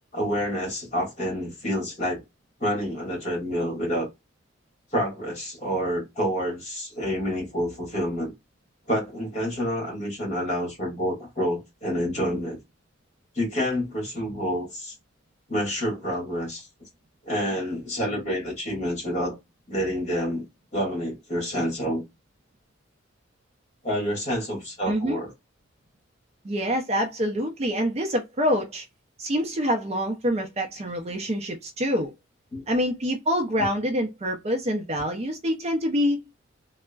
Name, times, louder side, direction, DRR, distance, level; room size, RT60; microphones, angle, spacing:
voice 1, 0.1-2.2 2.6-4.1 4.9-8.3 8.9-12.6 13.4-14.9 15.5-16.7 17.2-19.4 19.7-20.4 20.7-22.0 23.8-25.3 32.5-32.6 33.6-33.7, equal, 35° left, 1.6 m, -28 dB
voice 2, 24.9-25.2 26.4-28.9 29.2-32.1 32.7-36.2, equal, 30° right, 0.4 m, -26 dB
3.4 x 2.0 x 2.2 m
head